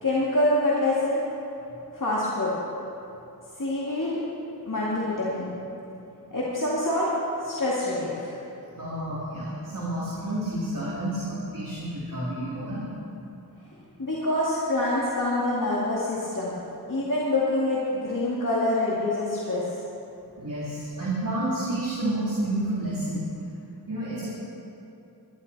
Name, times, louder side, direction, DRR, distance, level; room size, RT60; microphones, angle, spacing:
voice 1, 0.0-1.2 1.9-2.6 3.6-4.2 4.7-5.5 6.3-7.1 7.4-8.3 14.0-16.5 16.9-19.6, left 1 dB, 50° left, -7 dB, 2.3 m, -26 dB
voice 2, 8.7-12.9 20.4-23.2 23.9-24.3, right 1 dB, 50° right, -8 dB, 2.9 m, -30 dB
21.0 x 12.0 x 4.2 m, 2.8 s
wide cardioid pair, 60°, 41 cm